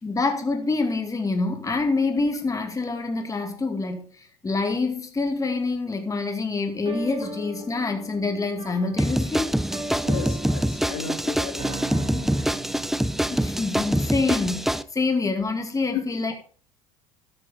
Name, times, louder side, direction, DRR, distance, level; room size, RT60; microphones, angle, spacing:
voice 1, 0.0-9.5 12.1-12.3 13.3-16.4, left 3 dB, 20° left, 2.3 m, -26 dB
sound 1, 6.9-13.8, right 2 dB, 30° right, 3.1 m, -39 dB
sound 2, 9.0-14.8, right 1 dB, ahead, 0.6 m, -25 dB
voice 2, 10.0-12.3, left 6 dB, 75° left, 2.7 m, -36 dB
13.0 x 9.8 x 3.7 m
hypercardioid pair, 75°, 18 cm